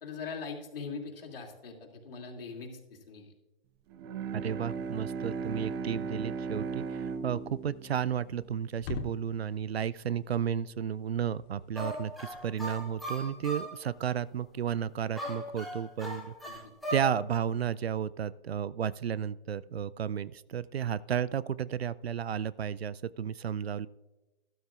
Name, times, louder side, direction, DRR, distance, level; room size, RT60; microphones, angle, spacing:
voice 1, 0.0-3.3 16.4-16.6, left 5 dB, 70° left, 0 dB, 2.7 m, -41 dB
Bowed string instrument, 3.9-9.3, right 5 dB, 25° right, 0.6 m, -37 dB
voice 2, 4.3-16.6 16.9-23.9, right 8 dB, 90° right, 20 dB, 0.5 m, -33 dB
sound 1, 4.8-13.7, left 4 dB, 25° left, 0.8 m, -49 dB
sound 2, 11.8-13.8 15.2-17.2, equal, ahead, 1.4 m, -38 dB
12.5 x 12.5 x 2.4 m, 1.1 s
hypercardioid pair, 130°, 30 cm